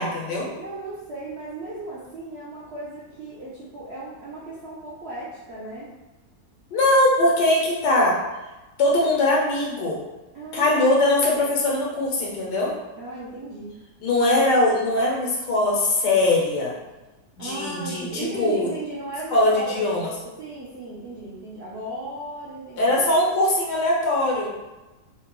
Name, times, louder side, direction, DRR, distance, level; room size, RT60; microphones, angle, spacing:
voice 1, 0.0-0.5 6.7-8.1 8.8-10.0 10.5-12.7 14.0-16.7 17.4-18.7 19.3-20.1 22.8-24.5, left 2 dB, 85° left, -2 dB, 1.4 m, -21 dB
voice 2, 0.6-5.9 10.3-11.1 13.0-13.8 17.4-19.8 20.4-23.0, right 2 dB, 70° right, -7 dB, 0.6 m, -36 dB
3.8 x 2.2 x 2.9 m, 1.1 s
omnidirectional pair, 1.7 m